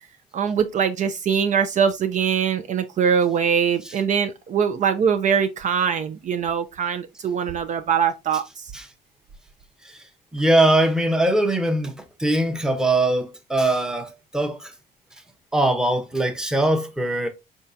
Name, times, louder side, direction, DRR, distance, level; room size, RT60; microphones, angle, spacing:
voice 1, 0.3-8.7, right 7 dB, 45° right, 0.5 m, -22 dB
voice 2, 10.3-11.9 12.2-14.7 15.5-17.3, right 1 dB, 5° right, 0.8 m, -21 dB
4.5 x 3.6 x 2.6 m
cardioid pair, 110°, 17 cm